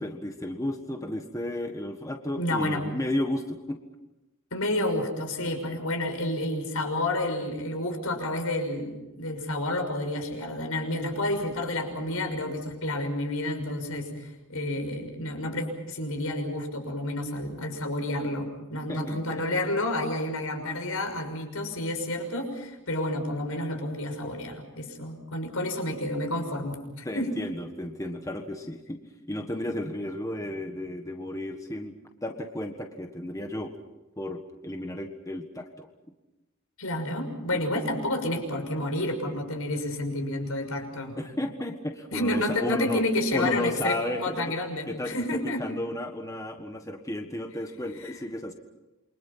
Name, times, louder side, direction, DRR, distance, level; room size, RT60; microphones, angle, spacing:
voice 1, 0.0-3.8 5.5-5.8 18.9-19.2 27.0-29.0 29.3-31.9 32.2-33.7 34.2-35.9 37.5-37.8 41.2-43.0 43.3-44.5 44.9-45.1 45.4-48.5, left 1 dB, 15° left, 4 dB, 1.6 m, -33 dB
voice 2, 2.4-2.8 4.5-27.3 36.8-41.1 42.1-45.6 48.0-48.2, left 1 dB, 75° left, 5 dB, 6.2 m, -30 dB
28.5 x 25.0 x 5.7 m, 1.0 s
head